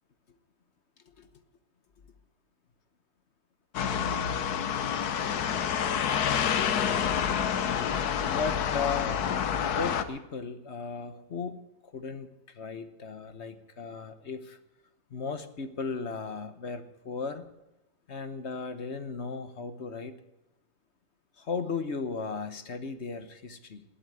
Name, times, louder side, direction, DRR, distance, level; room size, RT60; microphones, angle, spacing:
sound 1, 3.7-10.0, left 8 dB, 70° left, 1.5 m, -28 dB
voice 1, 8.2-9.2 9.6-11.6 11.8-14.6 15.1-17.4 18.1-20.1 21.4-23.8, left 5 dB, 45° left, 11 dB, 1.3 m, -36 dB
19.5 x 8.5 x 8.2 m, 0.96 s
omnidirectional pair, 1.7 m